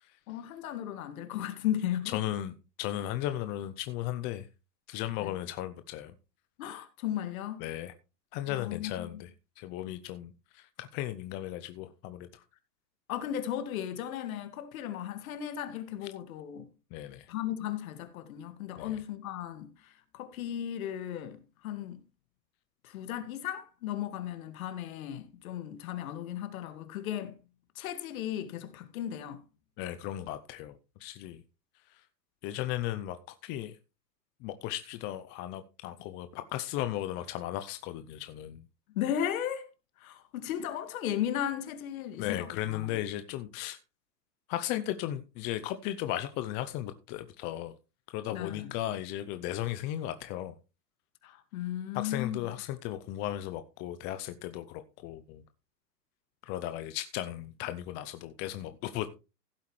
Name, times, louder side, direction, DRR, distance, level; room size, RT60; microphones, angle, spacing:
voice 1, 0.3-2.2 5.2-5.3 6.6-7.6 8.5-9.2 13.1-16.7 17.3-22.0 22.8-27.3 27.8-29.4 38.9-39.7 40.0-43.0 48.3-48.7 51.2-52.4, left 11 dB, 55° left, 2.0 m, -36 dB
voice 2, 2.1-4.5 4.9-6.1 7.6-7.9 8.3-9.3 9.6-12.4 16.9-17.3 18.8-19.0 29.8-31.4 32.4-33.8 34.4-38.6 42.2-43.8 44.5-47.7 48.1-50.6 51.9-55.4 56.4-59.1, left 13 dB, 20° left, 0.5 m, -36 dB
15.5 x 8.1 x 3.2 m
hypercardioid pair, 125°, 49 cm